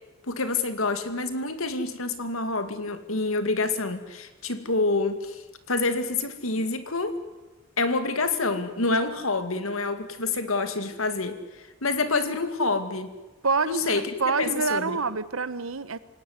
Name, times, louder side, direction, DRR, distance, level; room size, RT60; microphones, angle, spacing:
voice 1, 0.3-7.2 7.8-13.1 13.7-14.1 14.4-15.0, left 3 dB, 90° left, 2.3 m, -27 dB
voice 2, 13.4-16.0, right 4 dB, 85° right, 1.2 m, -27 dB
27.5 x 18.0 x 9.8 m
head